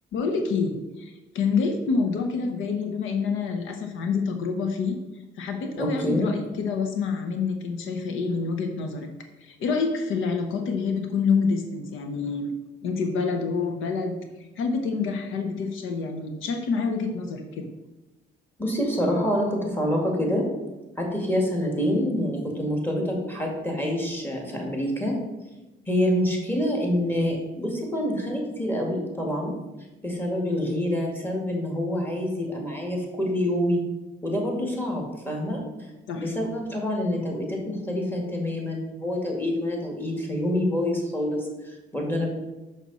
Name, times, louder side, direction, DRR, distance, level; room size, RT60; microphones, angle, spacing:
voice 1, 0.1-5.0 5.4-9.1 9.4-12.5 12.8-14.2 14.6-17.7 36.1-36.3, left 5 dB, 85° left, 6 dB, 0.8 m, -27 dB
voice 2, 5.8-6.3 18.6-20.4 21.0-25.1 25.9-29.5 30.0-33.8 34.2-35.6 36.1-42.3, equal, 10° left, 0 dB, 1.9 m, -26 dB
6.1 x 5.7 x 4.0 m, 1.1 s
cardioid pair, 90°, 20 cm